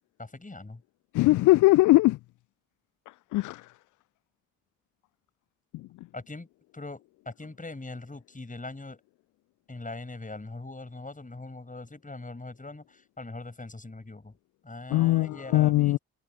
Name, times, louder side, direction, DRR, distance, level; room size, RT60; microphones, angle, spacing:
voice 1, 0.2-0.8 6.1-6.5 6.7-9.0 9.7-14.3 14.6-16.0, left 2 dB, 20° left, 8.0 m, -41 dB
voice 2, 1.1-2.2 3.3-3.6 14.9-16.0, left 19 dB, 50° left, 0.5 m, -20 dB
figure-of-eight pair, 40°, 40 cm